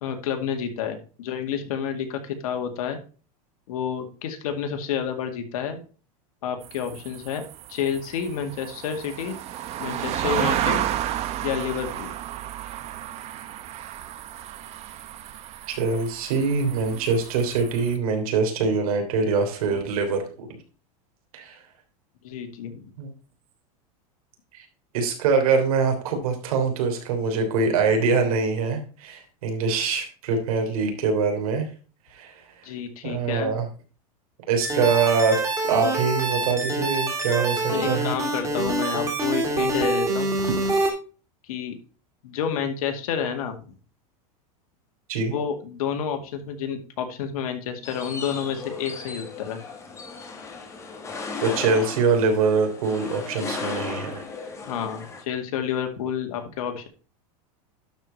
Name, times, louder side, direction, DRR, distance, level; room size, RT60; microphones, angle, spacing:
voice 1, 0.0-3.0 3.7-5.8 6.4-7.4 7.7-9.4 9.8-10.9 11.4-12.1 22.2-22.9 32.6-33.5 37.7-40.3 41.4-41.8 42.2-43.6 45.2-49.6 54.6-56.9, left 7 dB, 80° left, 5 dB, 2.1 m, -29 dB
sound 1, 6.6-18.0, right 12 dB, 35° right, 0.9 m, -32 dB
voice 2, 15.7-20.5 21.3-21.6 23.0-23.1 24.5-24.6 24.9-31.7 32.1-32.3 33.0-33.7 34.5-38.1 45.1-45.3 51.4-54.2, right 4 dB, 80° right, 4 dB, 3.3 m, -24 dB
sound 2, 34.6-40.9, right 2 dB, 15° right, 2.8 m, -26 dB
sound 3, 47.8-55.2, left 4 dB, 15° left, 1.8 m, -36 dB
12.0 x 4.9 x 4.2 m, 0.37 s
supercardioid pair, 145°, 18 cm